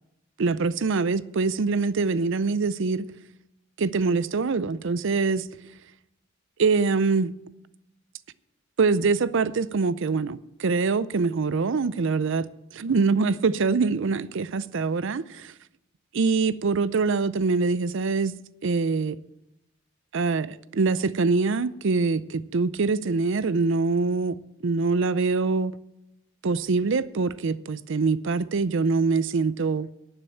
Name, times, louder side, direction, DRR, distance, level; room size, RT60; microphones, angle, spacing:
voice 1, 0.4-3.1 3.8-5.5 6.6-7.3 8.8-12.5 12.7-15.5 16.1-18.3 18.6-19.2 20.1-24.4 24.6-25.7 26.4-29.9, right 4 dB, 60° right, 0.5 m, -24 dB
11.5 x 6.8 x 8.6 m
head